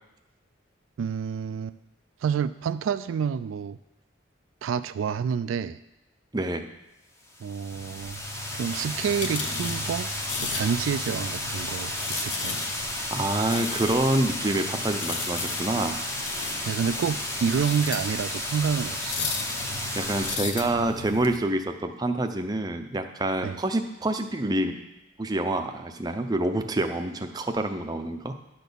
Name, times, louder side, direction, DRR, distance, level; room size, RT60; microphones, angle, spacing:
voice 1, 1.0-1.8 2.2-3.8 4.6-5.8 7.4-8.2 8.5-10.1 10.4-12.6 16.7-19.3 23.4-23.6, right 7 dB, 85° right, 13 dB, 0.3 m, -28 dB
voice 2, 6.3-6.6 13.1-16.0 20.0-24.8 25.2-28.3, right 1 dB, 20° right, 6 dB, 0.5 m, -27 dB
sound 1, 7.3-20.4, left 1 dB, 15° left, 0.7 m, -33 dB
sound 2, 7.7-21.4, left 4 dB, 65° left, 0.8 m, -36 dB
10.0 x 4.1 x 6.9 m, 0.97 s
head